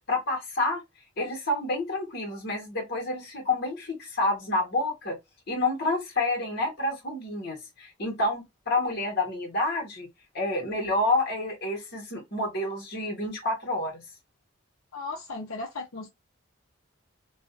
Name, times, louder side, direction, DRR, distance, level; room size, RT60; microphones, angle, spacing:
voice 1, 0.1-0.8 1.2-5.2 5.5-10.1 10.3-14.0, left 2 dB, 50° left, 1.3 m, -29 dB
voice 2, 14.9-16.1, left 3 dB, 85° left, 0.7 m, -36 dB
2.5 x 2.4 x 2.5 m
head